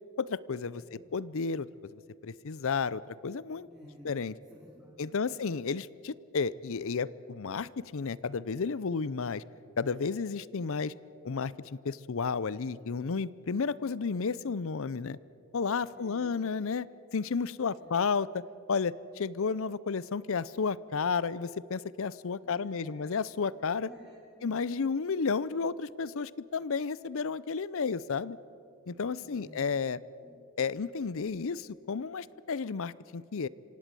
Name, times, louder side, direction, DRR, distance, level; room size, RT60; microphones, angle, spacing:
voice 1, 0.2-3.7 4.0-4.3 5.0-9.4 9.8-10.9 11.2-15.2 15.5-16.9 17.1-18.4 18.7-23.9 24.4-28.4 28.9-30.0 30.6-33.5, left 5 dB, 65° left, 20 dB, 0.6 m, -32 dB
voice 2, 0.8-1.1 3.6-4.2 4.5-5.5 15.9-16.5 17.7-18.0 22.4-23.2 23.9-24.5 29.2-29.6 30.2-30.4, equal, 5° right, -5 dB, 3.2 m, -54 dB
26.0 x 17.0 x 7.7 m, 2.6 s
head